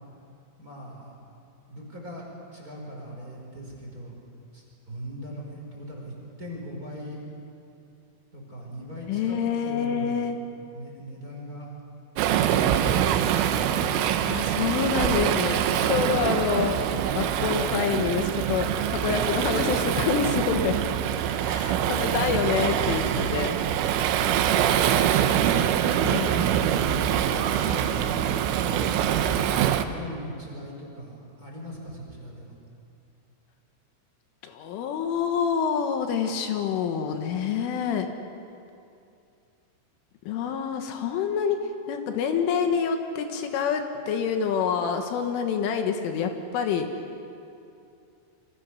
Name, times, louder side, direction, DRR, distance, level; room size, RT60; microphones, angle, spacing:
voice 1, 0.6-1.1 1.7-4.2 4.5-6.1 6.4-7.2 8.3-10.3 10.7-11.7 25.7-32.5, equal, 20° right, -2 dB, 4.9 m, -40 dB
voice 2, 9.1-10.4 14.2-16.8 17.1-20.9 21.4-23.6 26.0-26.3 34.4-38.1 40.3-41.6 41.9-46.9, left 7 dB, 80° left, 5 dB, 3.8 m, -27 dB
Waves surf, 12.2-29.9, right 10 dB, 80° right, 3.5 m, -24 dB
28.5 x 25.0 x 6.6 m, 2.6 s
omnidirectional pair, 5.8 m